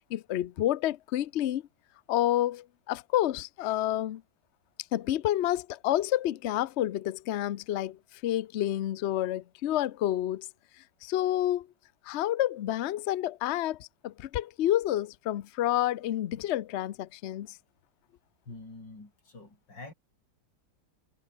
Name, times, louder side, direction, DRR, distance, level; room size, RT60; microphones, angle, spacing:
voice 1, 0.1-1.6 2.1-4.2 4.9-10.5 11.0-11.7 12.1-17.5, left 13 dB, 90° left, 0.6 m, -29 dB
voice 2, 18.5-19.9, left 3 dB, 75° left, 6.4 m, -46 dB
omnidirectional pair, 2.0 m